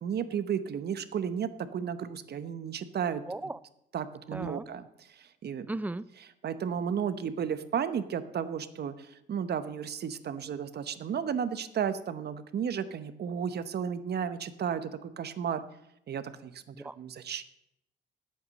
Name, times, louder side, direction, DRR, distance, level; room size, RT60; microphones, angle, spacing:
voice 1, 0.0-3.2 3.9-5.7 6.2-15.6 16.1-17.4, right 7 dB, 55° right, 12 dB, 0.9 m, -33 dB
voice 2, 3.3-3.6 4.3-4.6 5.7-6.0 16.7-16.9, right 2 dB, 10° right, 17 dB, 0.4 m, -36 dB
9.4 x 8.0 x 7.5 m, 0.80 s
cardioid pair, 90°, 20 cm